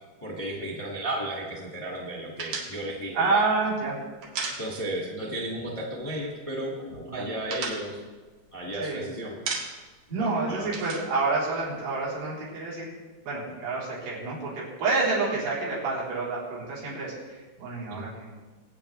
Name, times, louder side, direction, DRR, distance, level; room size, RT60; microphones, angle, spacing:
voice 1, 0.2-3.6 4.6-8.0 8.5-9.3 10.2-10.8 17.9-18.0, right 1 dB, 15° left, -3 dB, 1.4 m, -34 dB
sound 1, 2.4-5.2 5.4-5.6 5.9-6.6 6.9-8.9 9.3-10.0 10.3-12.1, right 4 dB, 60° right, 3.3 m, -36 dB
voice 2, 3.1-4.0 7.1-7.3 8.8-9.0 10.1-12.9 13.2-18.3, right 3 dB, 80° right, -7 dB, 6.3 m, -28 dB
24.0 x 8.8 x 3.5 m, 1.3 s
omnidirectional pair, 4.8 m